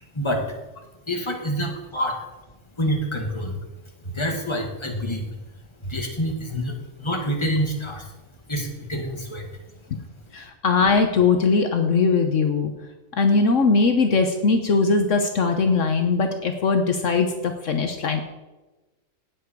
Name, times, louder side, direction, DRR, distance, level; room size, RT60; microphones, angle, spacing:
voice 1, 0.1-0.5 1.1-2.2 2.8-3.6 4.0-5.3 5.8-8.1 8.5-9.5, equal, 20° left, 1 dB, 2.1 m, -27 dB
voice 2, 10.3-12.7 13.2-18.2, left 4 dB, 70° left, 6 dB, 1.3 m, -20 dB
18.0 x 7.7 x 4.7 m, 1.1 s
omnidirectional pair, 1.4 m